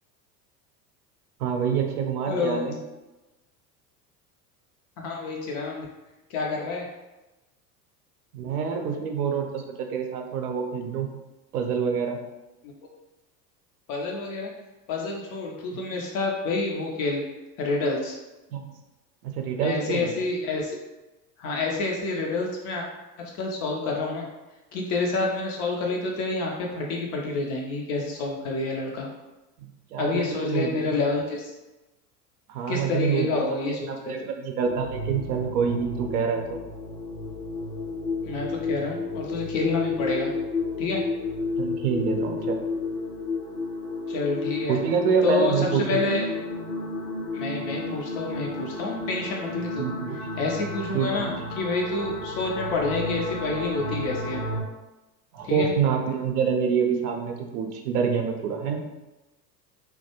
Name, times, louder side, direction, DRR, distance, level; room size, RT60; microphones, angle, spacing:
voice 1, 1.4-2.8 8.3-11.1 11.5-12.2 18.5-18.6 19.2-20.1 29.9-31.1 32.5-36.6 41.6-42.6 44.7-46.0 49.8-50.3 50.9-51.3 55.3-59.0, right 6 dB, 70° right, 3 dB, 0.6 m, -26 dB
voice 2, 2.3-2.6 5.0-5.9 6.3-6.8 12.6-12.7 13.9-14.5 14.9-17.2 17.6-18.2 19.6-20.8 21.4-22.8 23.4-24.3 24.7-29.1 30.0-31.5 32.7-34.1 38.3-40.3 40.8-41.0 44.1-44.8 45.2-46.2 47.3-49.9 50.4-51.3 51.6-54.4 55.4-55.7, left 3 dB, 35° left, 0 dB, 0.4 m, -28 dB
sound 1, 34.6-54.6, left 3 dB, 75° left, 0.8 m, -32 dB
2.2 x 2.1 x 2.7 m, 1.1 s
figure-of-eight pair, 75°, 48 cm